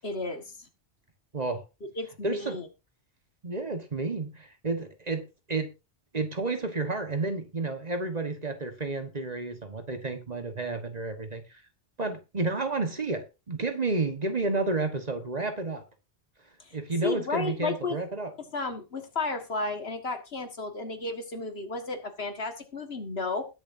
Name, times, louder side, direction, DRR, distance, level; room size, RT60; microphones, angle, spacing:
voice 1, 0.0-0.7 2.0-2.7 16.6-18.0 18.4-23.5, left 3 dB, 65° left, 1.9 m, -33 dB
voice 2, 2.2-2.6 3.4-5.7 6.1-11.6 12.0-15.8 16.7-18.3, right 3 dB, 40° right, 1.4 m, -31 dB
20.5 x 7.1 x 2.7 m
omnidirectional pair, 1.1 m